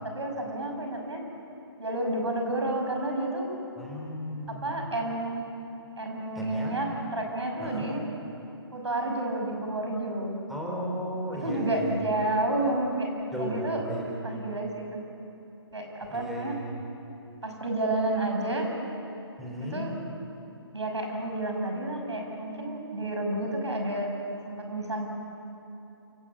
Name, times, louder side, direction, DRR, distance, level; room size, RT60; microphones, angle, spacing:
voice 1, 0.0-1.2 1.8-3.5 4.5-5.5 6.0-8.0 8.7-10.4 11.3-13.1 13.3-13.8 14.2-15.0 15.7-16.5 17.4-18.7 19.7-19.9 20.7-24.1 24.4-25.1, right 1 dB, 85° right, 2 dB, 6.3 m, -30 dB
voice 2, 3.8-4.8 6.3-6.8 7.6-7.9 10.5-12.0 13.3-14.2 16.1-16.8 19.4-19.9, equal, ahead, -5 dB, 3.9 m, -35 dB
28.0 x 17.5 x 8.7 m, 3.0 s
hypercardioid pair, 150°, 14 cm